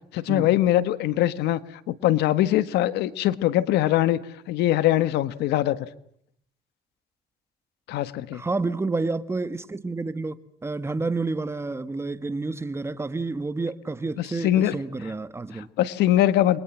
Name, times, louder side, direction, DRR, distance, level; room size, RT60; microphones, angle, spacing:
voice 1, 0.1-4.2 4.5-5.9 7.9-8.4 14.2-14.7 15.5-16.6, left 13 dB, 85° left, 1.6 m, -22 dB
voice 2, 8.3-10.3 10.6-15.7, right 3 dB, 15° right, 1.6 m, -29 dB
29.5 x 23.5 x 7.4 m
cardioid pair, 110°, 17 cm